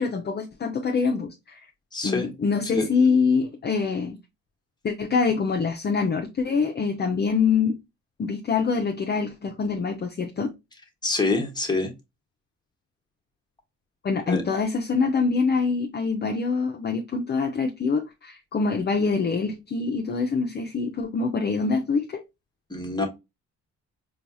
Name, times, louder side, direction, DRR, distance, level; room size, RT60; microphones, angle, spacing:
voice 1, 0.0-1.6 2.0-4.2 4.8-7.8 8.2-10.5 14.0-22.2, left 5 dB, 35° left, 0.6 m, -25 dB
voice 2, 1.9-2.3 2.7-2.8 11.0-11.9 14.3-14.4 22.7-23.1, left 3 dB, 15° left, 1.2 m, -25 dB
4.4 x 2.3 x 2.7 m
cardioid pair, 90°, 30 cm